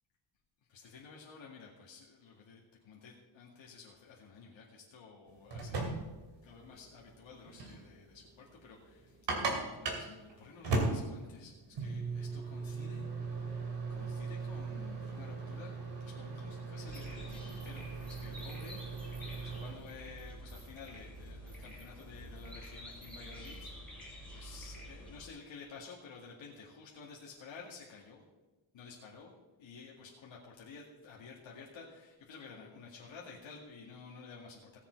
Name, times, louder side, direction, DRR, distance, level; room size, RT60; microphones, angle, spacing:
voice 1, 0.7-6.0 6.4-15.7 16.0-28.2 28.7-29.3 29.6-34.8, left 5 dB, 65° left, -3 dB, 2.2 m, -52 dB
sound 1, 5.3-19.7, right 3 dB, 60° right, 2.8 m, -39 dB
sound 2, 16.9-25.3, equal, ahead, 3.1 m, -48 dB
sound 3, 16.9-23.8, right 2 dB, 85° right, 4.7 m, -64 dB
18.0 x 7.3 x 4.6 m, 1.2 s
cardioid pair, 145°, 48 cm